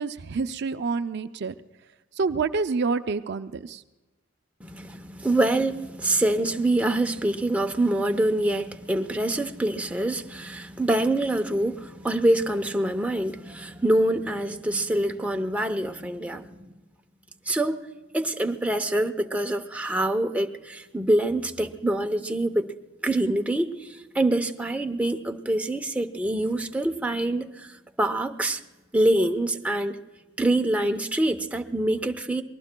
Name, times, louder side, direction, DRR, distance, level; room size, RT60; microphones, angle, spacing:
voice 1, 0.0-1.5 2.2-3.8, right 4 dB, 60° right, 0.5 m, -27 dB
voice 2, 4.6-16.7 17.5-17.8 18.1-22.7 23.0-28.6 28.9-30.0 30.4-32.4, right 1 dB, 5° right, 0.7 m, -25 dB
27.0 x 20.0 x 2.2 m
head